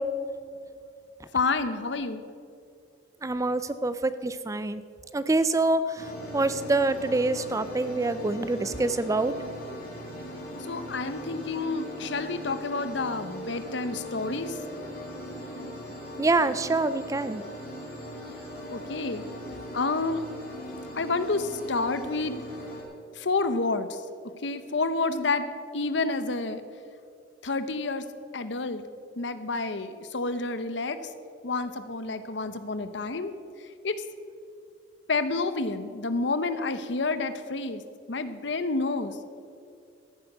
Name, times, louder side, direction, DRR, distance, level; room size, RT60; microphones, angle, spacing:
voice 1, 1.3-2.2 10.6-14.6 18.7-19.2 19.7-20.2 20.9-22.4 23.2-24.0 24.4-25.5 25.7-26.6 27.4-28.0 28.3-28.8 29.2-31.0 31.4-33.3 33.8-34.0 35.1-37.8 38.1-39.2, left 3 dB, 65° left, 11 dB, 0.8 m, -29 dB
voice 2, 3.2-4.8 5.1-9.3 16.2-17.4, right 2 dB, 15° right, 13 dB, 0.3 m, -26 dB
sound 1, 6.0-22.8, equal, 50° left, 4.2 m, -39 dB
14.0 x 9.0 x 6.7 m, 2.4 s
head